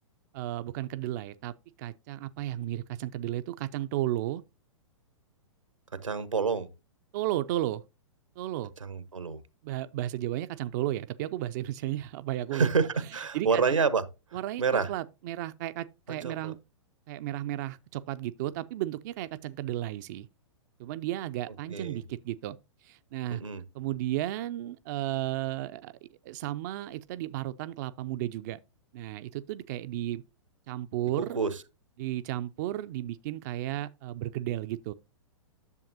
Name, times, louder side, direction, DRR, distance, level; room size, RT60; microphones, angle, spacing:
voice 1, 0.3-4.4 7.1-7.8 8.4-8.7 9.6-12.7 13.3-13.8 14.3-14.6 14.9-16.6 17.1-20.3 20.8-22.6 22.8-23.4 23.7-28.6 28.9-30.2 30.7-31.4 32.0-34.9, right 14 dB, 35° right, 0.4 m, -33 dB
voice 2, 5.9-6.7 8.8-9.4 12.5-14.0 14.3-14.9 16.2-16.5 21.7-22.0 23.3-23.6 31.2-31.5, right 5 dB, 80° right, 1.0 m, -28 dB
10.5 x 7.0 x 2.7 m
figure-of-eight pair, 110°, 16 cm